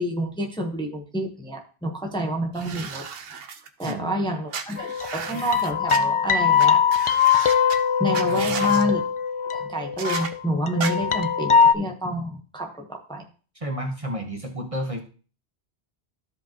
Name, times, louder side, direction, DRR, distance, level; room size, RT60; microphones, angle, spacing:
voice 1, 0.0-3.1 3.8-6.8 8.0-9.0 9.7-13.3, equal, 5° left, 1 dB, 0.9 m, -28 dB
sound 1, 2.5-3.9 4.5-6.0 6.6-6.7 6.9-7.8 8.1-8.8 10.0-10.3 10.8-10.9, right 6 dB, 65° right, 0.9 m, -34 dB
voice 2, 3.8-4.2 8.3-8.7 13.6-15.0, equal, 35° right, 3 dB, 1.1 m, -31 dB
sound 2, 4.8-10.4 10.7-11.7, left 7 dB, 45° left, 0.4 m, -21 dB
13.5 x 5.1 x 2.9 m, 0.38 s
omnidirectional pair, 1.1 m